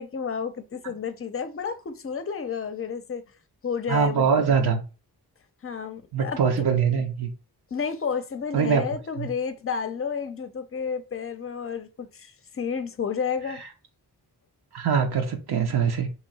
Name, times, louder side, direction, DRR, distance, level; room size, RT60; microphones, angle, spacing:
voice 1, 0.0-3.2 3.6-4.5 5.6-6.4 7.7-13.6, left 6 dB, 35° left, 0.6 m, -31 dB
voice 2, 3.9-4.8 6.1-7.3 8.5-8.8 9.2-9.3 14.7-16.1, right 6 dB, 70° right, 0.7 m, -23 dB
3.0 x 2.7 x 4.0 m
cardioid pair, 70°, 40 cm